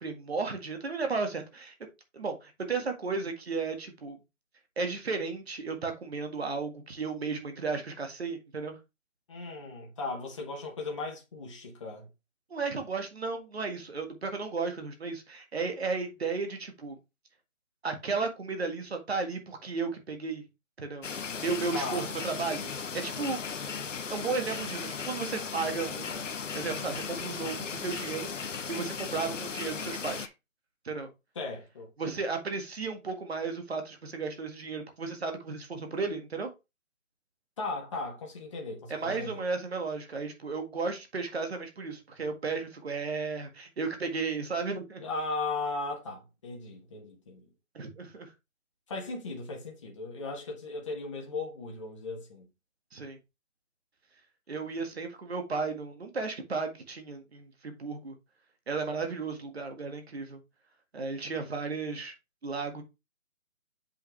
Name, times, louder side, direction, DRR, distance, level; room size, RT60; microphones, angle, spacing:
voice 1, 0.0-1.7 2.1-4.2 4.8-8.8 12.5-17.0 17.8-20.4 20.8-21.1 21.4-23.8 24.1-26.3 26.5-30.3 30.9-31.1 32.0-36.5 38.9-45.0 47.7-48.3 52.9-53.2 54.5-58.2 58.7-60.4 60.9-62.1 62.4-62.8, right 4 dB, 45° right, 1.9 m, -34 dB
voice 2, 9.3-12.1 21.7-22.1 31.3-31.9 37.6-39.5 45.0-47.5 48.9-52.5, left 3 dB, 20° left, 1.4 m, -37 dB
sound 1, 21.0-30.3, left 6 dB, 60° left, 0.9 m, -36 dB
7.6 x 5.7 x 3.3 m
figure-of-eight pair, 165°, 42 cm